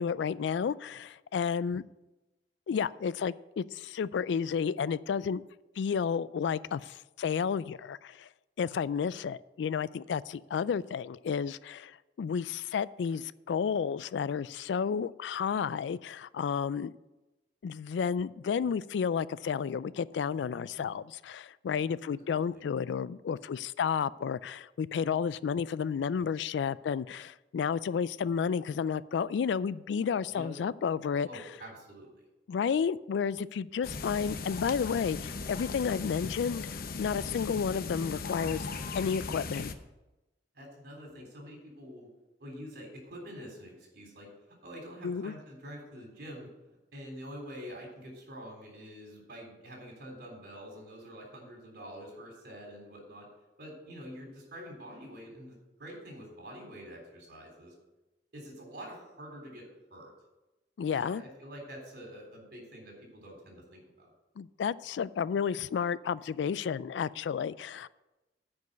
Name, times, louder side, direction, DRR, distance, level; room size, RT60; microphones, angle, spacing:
voice 1, 0.0-1.8 2.7-5.4 5.8-8.3 8.6-16.9 17.6-31.3 32.5-36.7 37.0-38.7 38.9-39.7 45.0-45.3 60.8-61.2 64.4-67.9, left 6 dB, 70° left, 19 dB, 0.3 m, -31 dB
voice 2, 22.3-22.6 30.2-30.5 31.2-32.3 40.5-42.1 42.4-44.3 44.6-46.5 46.9-53.3 53.6-57.7 58.3-60.1 60.9-64.1, equal, 60° right, 1 dB, 3.6 m, -46 dB
sound 1, 33.8-39.7, left 4 dB, 55° left, 0.7 m, -38 dB
9.4 x 5.3 x 8.0 m, 1.0 s
head